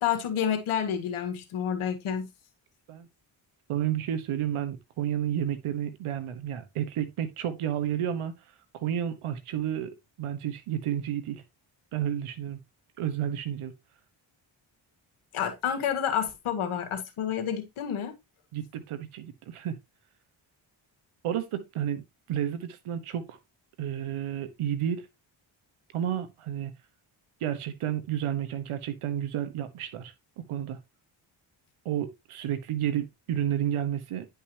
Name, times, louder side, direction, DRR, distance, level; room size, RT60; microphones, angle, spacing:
voice 1, 0.0-2.3 15.3-18.2, left 8 dB, 85° left, 2.0 m, -29 dB
voice 2, 3.7-8.3 8.7-11.4 11.9-12.6 13.0-13.7 18.5-19.7 21.2-23.4 23.8-25.1 25.9-26.7 27.4-30.1 30.5-30.8 31.8-34.3, right 10 dB, 85° right, 1.3 m, -31 dB
10.0 x 5.4 x 2.9 m
cardioid pair, 60°, 49 cm